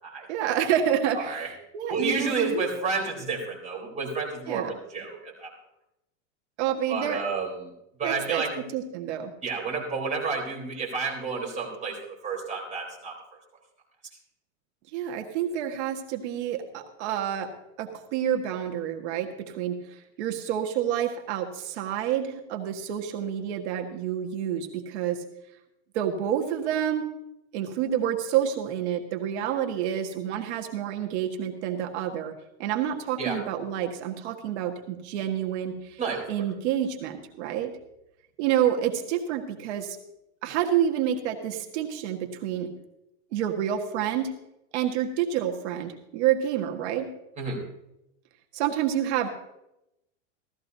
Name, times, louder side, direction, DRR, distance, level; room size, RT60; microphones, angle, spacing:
voice 1, 0.3-2.6 4.5-4.7 6.6-7.2 8.0-8.4 8.7-9.3 14.9-17.5 17.8-25.2 25.9-27.1 27.5-32.3 32.6-36.0 36.3-37.7 38.4-40.0 40.4-42.7 43.3-44.3 44.7-47.1 48.5-49.3, right 10 dB, 65° right, 3 dB, 1.6 m, -28 dB
voice 2, 1.2-1.5 1.9-5.5 6.9-7.7 8.0-8.6 9.4-13.2 33.2-33.4 36.0-36.3 47.4-47.6, right 4 dB, 20° right, -3 dB, 3.7 m, -30 dB
16.0 x 13.5 x 2.7 m, 0.86 s
supercardioid pair, 160°, 37 cm